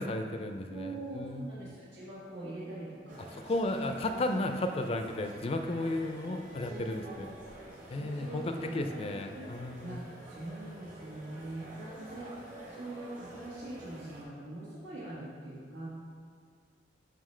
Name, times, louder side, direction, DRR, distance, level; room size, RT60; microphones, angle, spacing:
voice 1, 0.0-1.5 3.3-7.3 7.9-10.0, left 2 dB, 30° left, 6 dB, 0.4 m, -34 dB
voice 2, 0.7-3.9 6.6-7.3 7.9-9.5 9.8-12.3 12.7-15.9, right 2 dB, 85° right, -8 dB, 1.3 m, -43 dB
sound 1, 3.1-14.2, right 1 dB, 45° right, 1.3 m, -49 dB
7.4 x 5.5 x 3.2 m, 2.1 s
head